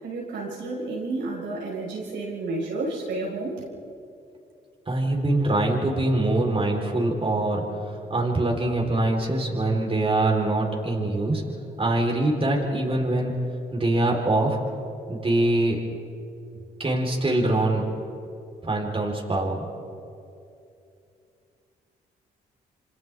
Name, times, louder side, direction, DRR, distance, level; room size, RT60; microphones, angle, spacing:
voice 1, 0.0-3.6, right 2 dB, 75° right, -5 dB, 5.6 m, -31 dB
voice 2, 4.9-7.6 8.1-11.4 11.8-13.3 13.7-14.6 15.1-15.8 16.8-17.8 18.6-19.7, right 2 dB, 30° right, -1 dB, 4.3 m, -23 dB
28.5 x 25.5 x 3.7 m, 2.6 s
supercardioid pair, 55°, 19 cm